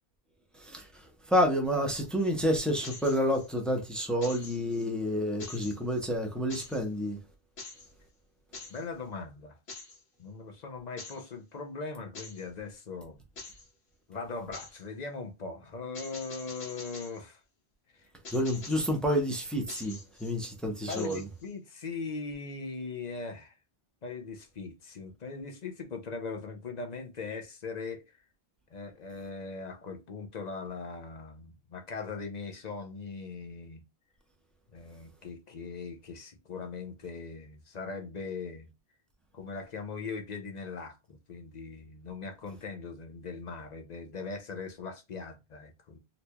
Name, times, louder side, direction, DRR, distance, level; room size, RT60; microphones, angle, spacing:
voice 1, 0.6-7.2 18.3-21.2, equal, ahead, 0.6 m, -29 dB
sound 1, 2.8-3.5 4.2-4.9 5.4-6.0 6.5-6.8 7.6-7.9 8.5-8.8 9.7-10.0 11.0-11.3 12.1-12.5 13.4-13.7 14.5-14.8 15.9-17.2 18.2-18.9 19.7-20.4 20.9-21.5, left 3 dB, 85° left, 1.4 m, -45 dB
voice 2, 8.7-9.6 10.2-13.2 14.1-17.4 17.9-18.1 20.9-23.6 24.0-28.0 28.7-33.8 34.7-38.7 39.3-46.0, left 4 dB, 45° left, 0.7 m, -40 dB
4.0 x 3.0 x 2.2 m
omnidirectional pair, 1.1 m